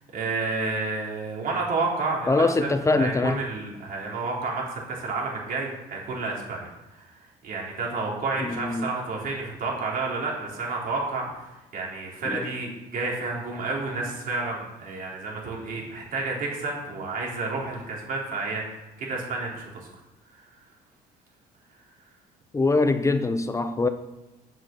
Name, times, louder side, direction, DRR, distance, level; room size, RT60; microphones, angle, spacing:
voice 1, 0.1-2.7 3.0-6.7 7.0-7.2 7.4-18.6 19.0-19.9, right 3 dB, 55° right, -3 dB, 4.1 m, -30 dB
voice 2, 2.3-3.4 8.4-8.9 12.3-12.4 22.5-23.9, left 3 dB, 20° left, 9 dB, 0.8 m, -23 dB
8.1 x 7.8 x 7.4 m, 1.0 s
cardioid pair, 110°, 17 cm